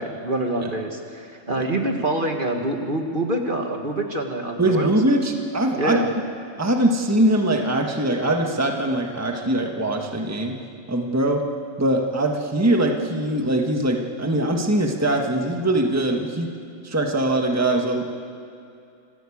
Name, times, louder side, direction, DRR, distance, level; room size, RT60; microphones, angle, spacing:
voice 1, 0.0-5.0 5.8-6.1, right 1 dB, 40° right, 3 dB, 1.7 m, -26 dB
voice 2, 4.6-6.0 6.6-10.6 10.9-11.4 11.8-16.5 16.8-18.1, right 1 dB, 10° right, 2 dB, 1.5 m, -22 dB
26.0 x 15.5 x 8.6 m, 2.5 s
omnidirectional pair, 1.4 m